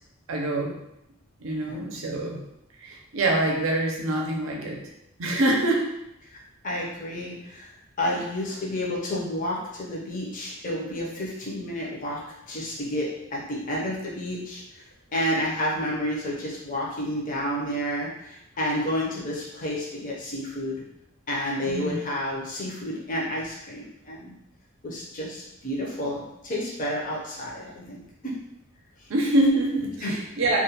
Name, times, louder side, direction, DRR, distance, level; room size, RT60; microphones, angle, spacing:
voice 1, 0.3-0.8 1.4-2.4 2.8-4.8 5.2-5.9 21.6-22.0 29.1-30.6, right 1 dB, 60° right, 0 dB, 0.5 m, -25 dB
voice 2, 6.6-12.2 12.5-14.6 15.1-20.8 21.3-24.3 24.8-28.3 30.0-30.2, left 1 dB, 40° left, -3 dB, 0.6 m, -30 dB
2.4 x 2.2 x 2.8 m, 0.84 s
head